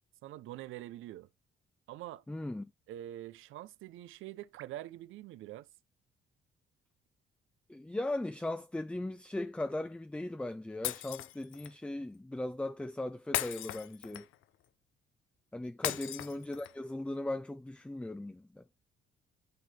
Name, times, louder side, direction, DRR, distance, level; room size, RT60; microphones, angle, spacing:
voice 1, 0.2-1.3 1.9-2.2 2.9-5.7 15.8-16.0, right 14 dB, 85° right, 0.6 m, -45 dB
voice 2, 2.3-2.7 7.7-14.3 15.5-18.6, left 1 dB, 5° left, 0.4 m, -38 dB
Shatter, 10.8-11.7 13.3-14.4 15.8-16.8, left 14 dB, 85° left, 0.6 m, -37 dB
9.3 x 4.1 x 3.3 m
cardioid pair, 90°, 20 cm